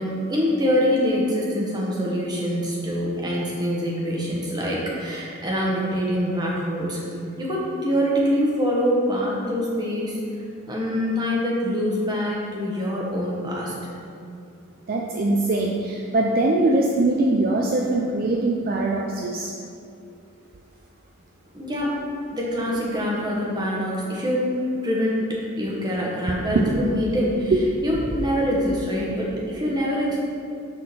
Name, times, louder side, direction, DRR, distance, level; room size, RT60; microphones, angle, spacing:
voice 1, 0.0-7.0 7.4-10.2 10.7-13.9 21.5-22.0 22.3-24.6 24.8-25.2 25.6-27.5 27.8-30.2, equal, 20° right, -4 dB, 1.2 m, -24 dB
voice 2, 14.9-19.5 26.5-26.8 27.5-27.6, right 2 dB, 45° right, -1 dB, 0.4 m, -22 dB
6.2 x 3.8 x 6.1 m, 2.5 s
head